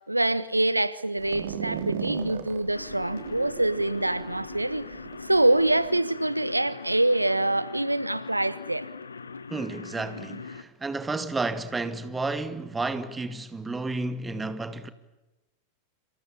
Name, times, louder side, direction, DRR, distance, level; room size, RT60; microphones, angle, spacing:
voice 1, 0.1-5.0 5.2-8.9, right 1 dB, 85° right, 1.1 m, -25 dB
sound 1, 1.2-5.8, right 8 dB, 60° right, 3.0 m, -37 dB
sound 2, 2.7-10.6, left 4 dB, 75° left, 1.5 m, -41 dB
voice 2, 9.5-14.9, right 3 dB, 10° right, 2.2 m, -31 dB
28.0 x 27.0 x 7.1 m
figure-of-eight pair, 90°, 0 cm